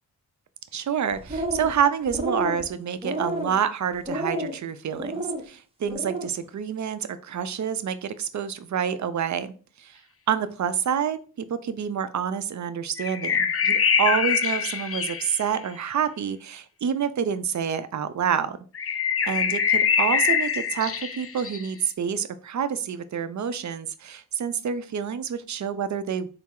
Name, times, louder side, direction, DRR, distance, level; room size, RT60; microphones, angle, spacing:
voice 1, 0.7-9.5 9.8-10.0 10.3-18.6 19.3-26.3, right 7 dB, 45° right, 12 dB, 0.5 m, -28 dB
sound 1, 1.1-1.8 2.1-2.6 3.0-3.6 4.1-4.6 5.0-5.4 5.8-6.3, right 1 dB, 15° right, 0.8 m, -30 dB
sound 2, 13.0-15.5 18.7-21.7, left 7 dB, 35° left, 0.5 m, -24 dB
4.1 x 2.0 x 3.6 m, 0.39 s
cardioid pair, 50°, 39 cm